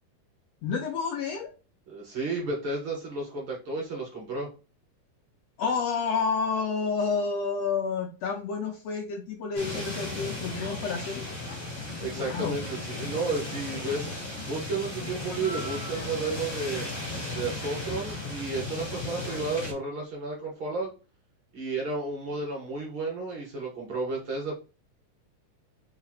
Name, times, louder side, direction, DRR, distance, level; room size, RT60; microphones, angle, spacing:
voice 1, 0.6-1.5 5.6-11.3 12.1-12.6, left 5 dB, 75° left, 2 dB, 1.7 m, -29 dB
voice 2, 1.9-4.5 12.0-14.1 14.5-16.9 17.3-20.9 21.5-24.6, right 3 dB, 45° right, -1 dB, 2.2 m, -32 dB
sound 1, 9.5-19.7, left 2 dB, 20° left, 1.1 m, -35 dB
4.8 x 3.3 x 3.1 m, 0.32 s
omnidirectional pair, 3.5 m